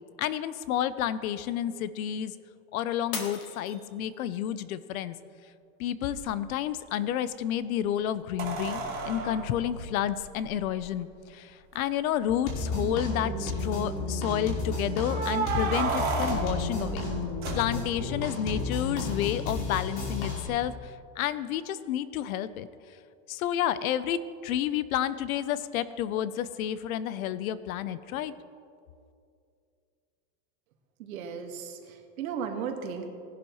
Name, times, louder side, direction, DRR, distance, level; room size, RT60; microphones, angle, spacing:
voice 1, 0.2-2.3 2.7-5.2 5.8-17.0 17.5-22.7 23.3-28.3, left 10 dB, 90° left, 15 dB, 0.7 m, -30 dB
Shatter, 3.1-4.4 4.9-5.4 5.9-6.0, left 5 dB, 15° left, 0.4 m, -39 dB
sound 1, 6.1-6.2 8.4-10.8 11.7-11.8 12.1-12.2 12.8-13.3 15.0-18.1 20.6-20.7, right 3 dB, 20° right, 1.4 m, -33 dB
sound 2, 12.5-20.5, left 2 dB, 40° left, 2.6 m, -32 dB
voice 2, 31.0-33.1, right 6 dB, 85° right, 4 dB, 1.7 m, -35 dB
18.0 x 11.0 x 3.1 m, 2.4 s
supercardioid pair, 180°, 41 cm